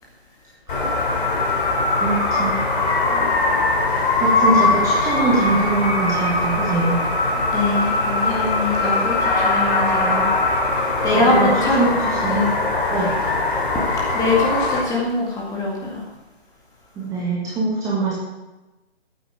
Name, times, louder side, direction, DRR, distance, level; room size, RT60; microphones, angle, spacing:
sound 1, 0.7-14.8, left 3 dB, 50° left, 3.2 m, -21 dB
voice 1, 2.0-2.6 4.2-7.0 8.2-8.4 10.0-10.3 10.7-10.8 11.1-12.4 12.9-13.1 17.0-18.1, right 3 dB, 10° right, -5 dB, 1.7 m, -23 dB
voice 2, 7.3-10.3 10.7-11.9 12.3-12.5 13.7-16.0, left 2 dB, 10° left, -2 dB, 2.0 m, -23 dB
13.0 x 9.2 x 5.0 m, 1.1 s
figure-of-eight pair, 150°, 32 cm